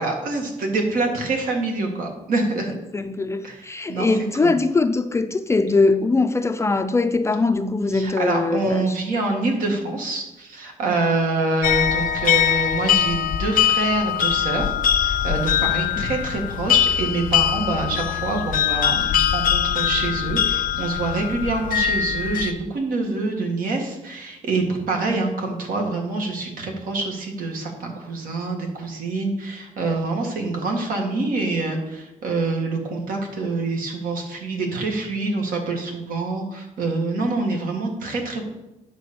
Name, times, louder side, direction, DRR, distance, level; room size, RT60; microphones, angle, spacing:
voice 1, 0.0-2.7 3.4-4.1 4.4-4.6 7.9-14.7 15.0-38.5, right 3 dB, 75° right, 1.8 m, -26 dB
voice 2, 2.9-9.0 16.0-16.1, left 3 dB, 20° left, 0.4 m, -21 dB
sound 1, 11.6-22.5, left 10 dB, 80° left, 0.5 m, -22 dB
9.4 x 4.1 x 6.8 m
cardioid pair, 145°, 14 cm